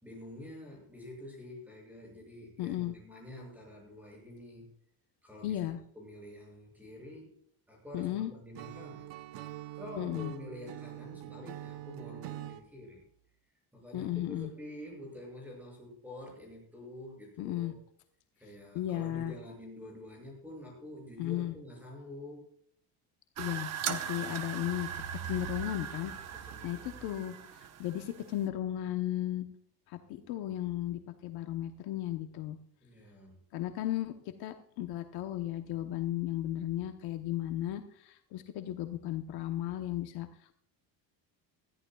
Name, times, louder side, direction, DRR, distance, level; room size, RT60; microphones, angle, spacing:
voice 1, 0.0-4.7 5.2-5.6 5.9-7.4 7.7-9.1 9.7-13.0 13.7-17.8 18.4-22.5 26.3-27.2 32.8-33.4, left 1 dB, 5° right, -1 dB, 6.8 m, -48 dB
voice 2, 2.6-2.9 5.4-5.8 7.9-8.3 10.0-10.3 13.9-14.5 17.4-17.7 18.7-19.3 21.2-21.5 23.4-24.9 25.2-26.1 26.6-29.5 29.9-32.6 33.5-40.3, left 13 dB, 60° left, 6 dB, 1.0 m, -35 dB
Acoustic guitar / Strum, 8.5-12.6, right 15 dB, 80° right, 1.1 m, -44 dB
sound 1, 23.4-28.5, right 8 dB, 40° right, 1.0 m, -39 dB
21.0 x 14.0 x 2.4 m, 0.62 s
cardioid pair, 180°, 42 cm